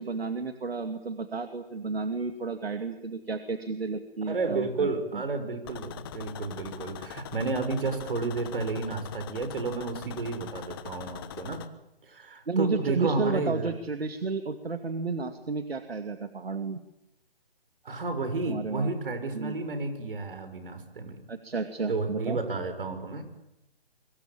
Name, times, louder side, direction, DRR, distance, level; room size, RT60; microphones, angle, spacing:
voice 1, 0.0-5.2 12.5-16.8 18.5-18.9 19.3-19.6 21.3-22.4, right 4 dB, 80° right, 8 dB, 2.4 m, -32 dB
voice 2, 4.3-11.6 12.0-13.7 17.8-21.2 21.9-23.2, right 3 dB, 65° right, 9 dB, 6.3 m, -31 dB
sound 1, 5.7-11.7, left 11 dB, 25° left, 1.3 m, -43 dB
25.0 x 24.5 x 8.9 m, 0.84 s
hypercardioid pair, 155°, 30 cm